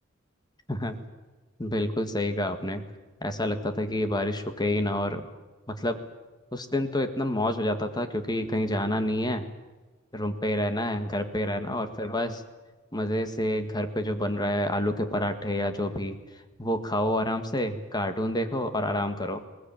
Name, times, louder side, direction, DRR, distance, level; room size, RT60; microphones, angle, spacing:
voice 1, 1.6-2.8 3.2-5.3 5.7-6.0 6.5-9.4 10.1-12.4 12.9-16.2 16.6-19.4, left 1 dB, 20° left, 8 dB, 1.7 m, -28 dB
21.5 x 19.0 x 8.9 m, 1.2 s
head